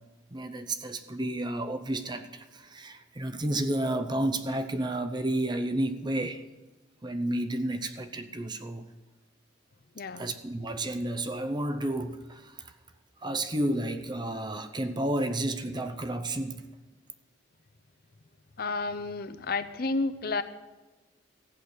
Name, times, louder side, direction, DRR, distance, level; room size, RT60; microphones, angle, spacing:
voice 1, 0.3-6.4 7.0-8.9 10.1-12.7 13.2-16.7, right 1 dB, 20° right, 8 dB, 0.7 m, -31 dB
voice 2, 9.9-10.3 18.6-20.4, left 3 dB, 50° left, 10 dB, 0.6 m, -31 dB
15.0 x 8.5 x 6.4 m, 1.2 s
head